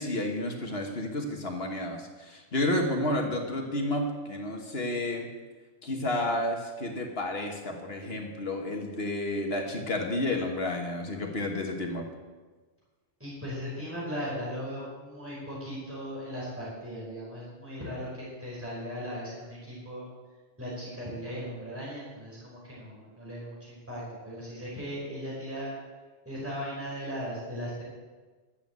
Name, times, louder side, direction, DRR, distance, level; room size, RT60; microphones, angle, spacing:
voice 1, 0.0-5.3 5.8-12.0, left 1 dB, 60° left, 2 dB, 1.7 m, -31 dB
voice 2, 13.2-20.0 20.6-25.7 26.2-27.8, equal, 10° right, -7 dB, 5.0 m, -37 dB
11.5 x 8.6 x 8.2 m, 1.3 s
omnidirectional pair, 1.2 m